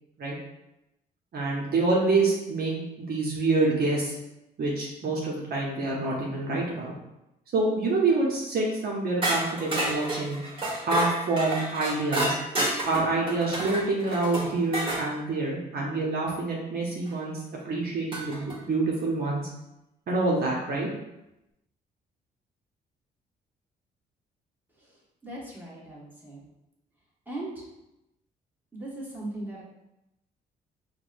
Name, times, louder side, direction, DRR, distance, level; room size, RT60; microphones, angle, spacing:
voice 1, 1.3-4.1 4.6-6.9 7.5-10.4 10.8-12.3 12.9-19.5 20.1-20.9, right 3 dB, 55° right, -3 dB, 0.8 m, -27 dB
sound 1, 9.2-15.1 17.1-17.2 18.1-18.6, right 1 dB, 30° right, 1.4 m, -30 dB
voice 2, 25.2-26.4 27.3-27.6 28.7-29.6, right 1 dB, 10° right, -6 dB, 1.5 m, -38 dB
4.6 x 2.1 x 2.5 m, 0.90 s
supercardioid pair, 65°, 19 cm